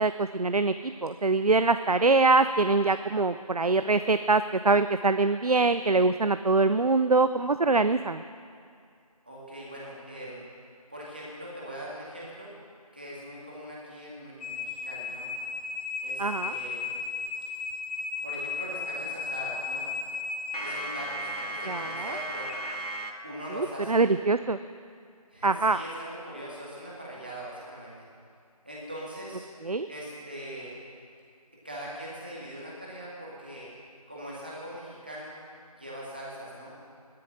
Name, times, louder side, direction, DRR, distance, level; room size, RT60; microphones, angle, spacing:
voice 1, 0.0-8.2 16.2-16.6 21.7-22.1 23.9-24.6 25.4-25.8 29.7-29.9, right 3 dB, 70° right, 11 dB, 0.6 m, -24 dB
voice 2, 9.3-10.4 10.9-12.5 12.9-15.3 16.0-16.9 18.2-19.9 20.6-22.5 23.2-24.0 25.3-27.9 28.6-29.5 29.9-30.7 31.6-33.7 34.1-35.4 35.7-36.7, equal, 15° right, -6 dB, 1.9 m, -41 dB
sound 1, 14.4-23.1, left 3 dB, 85° left, 2.1 m, -35 dB
17.5 x 12.5 x 6.3 m, 2.3 s
figure-of-eight pair, 180°, 20 cm